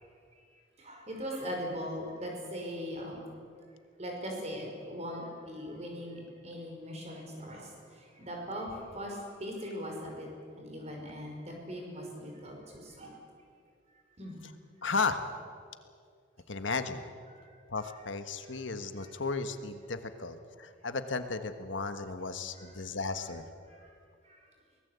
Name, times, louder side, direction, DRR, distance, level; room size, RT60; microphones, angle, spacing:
voice 1, 0.8-3.2 4.0-10.3 10.5-13.2 14.2-14.4 17.3-17.5 18.4-18.6 19.0-19.1 22.5-22.8 23.7-23.9 24.2-24.5, equal, 35° right, 1 dB, 5.4 m, -40 dB
voice 2, 14.8-15.2 16.5-17.0 17.7-23.4, left 4 dB, 75° left, 9 dB, 1.4 m, -34 dB
24.0 x 18.5 x 8.2 m, 2.3 s
head